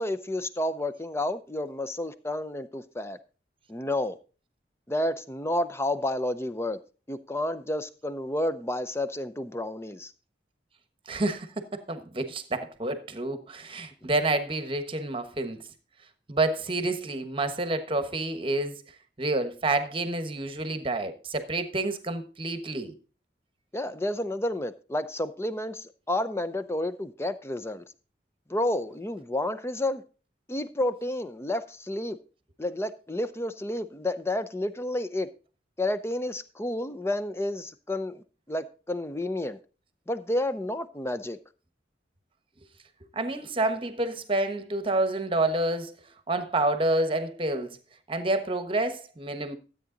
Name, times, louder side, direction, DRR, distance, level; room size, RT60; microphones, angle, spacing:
voice 1, 0.0-3.2 3.7-4.2 4.9-6.8 7.1-10.1 23.7-27.8 28.5-30.0 30.5-32.2 32.6-35.3 35.8-39.6 40.1-41.4, left 1 dB, 15° left, 0.6 m, -30 dB
voice 2, 11.1-15.6 16.3-18.8 19.2-22.9 43.1-45.9 46.3-47.8 48.1-49.5, right 2 dB, 30° right, 1.2 m, -28 dB
13.0 x 8.3 x 3.9 m
head